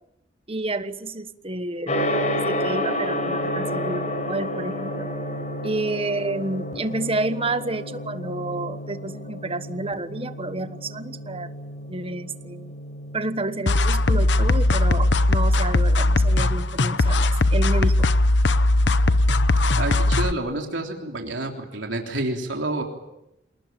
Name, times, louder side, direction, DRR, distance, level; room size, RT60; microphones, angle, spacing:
voice 1, 0.5-1.9 2.3-5.1 5.6-11.5 11.9-12.7 13.1-18.1, right 2 dB, 30° right, 11 dB, 1.3 m, -30 dB
Gong, 1.9-20.8, left 1 dB, 40° left, 5.4 m, -32 dB
sound 1, 13.7-20.3, left 2 dB, 70° left, 0.9 m, -19 dB
voice 2, 19.8-22.8, right 2 dB, 80° right, 2 dB, 3.5 m, -29 dB
27.5 x 19.0 x 9.0 m, 0.85 s
head